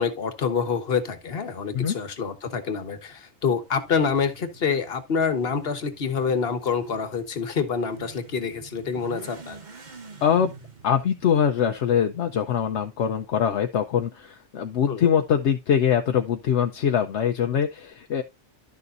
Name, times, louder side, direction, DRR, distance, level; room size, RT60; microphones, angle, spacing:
voice 1, 0.0-9.6 14.9-15.1, left 6 dB, 55° left, 1.4 m, -27 dB
Motorcycle / Accelerating revving vroom, 3.7-12.5, right 5 dB, 40° right, 1.4 m, -47 dB
voice 2, 10.2-10.5 10.8-18.2, left 8 dB, 75° left, 1.0 m, -23 dB
11.5 x 6.7 x 2.5 m
omnidirectional pair, 1.2 m